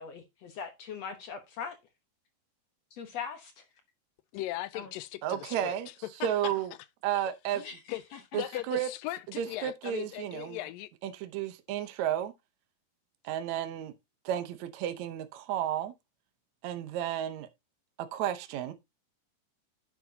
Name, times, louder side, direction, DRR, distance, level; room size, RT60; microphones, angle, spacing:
voice 1, 0.0-1.8 2.9-3.6 4.7-4.9 7.6-8.4, left 6 dB, 60° left, 1.9 m, -41 dB
voice 2, 4.3-5.8 6.2-6.5 7.1-7.2 7.9-8.0 8.3-10.9, left 16 dB, 85° left, 2.3 m, -38 dB
voice 3, 5.2-5.9 6.2-6.7 7.0-7.6 8.3-8.9 9.4-10.6 11.0-12.3 13.2-13.9 14.3-15.9 16.6-17.5 18.1-18.7, right 11 dB, 70° right, 2.0 m, -32 dB
10.0 x 7.6 x 2.8 m
omnidirectional pair, 3.9 m